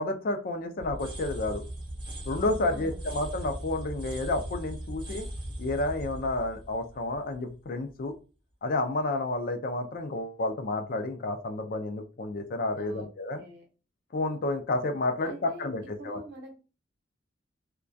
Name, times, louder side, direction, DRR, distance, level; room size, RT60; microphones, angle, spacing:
voice 1, 0.0-1.6 2.3-5.3 5.6-8.1 8.6-13.4 14.1-16.2, left 2 dB, 50° left, 6 dB, 0.4 m, -30 dB
sound 1, 0.8-7.6, right 1 dB, 25° right, 0.6 m, -39 dB
voice 2, 2.6-3.1 12.8-13.7 15.2-15.7 16.0-16.5, right 1 dB, 60° right, 1 dB, 0.8 m, -45 dB
2.2 x 2.2 x 2.5 m, 0.33 s
head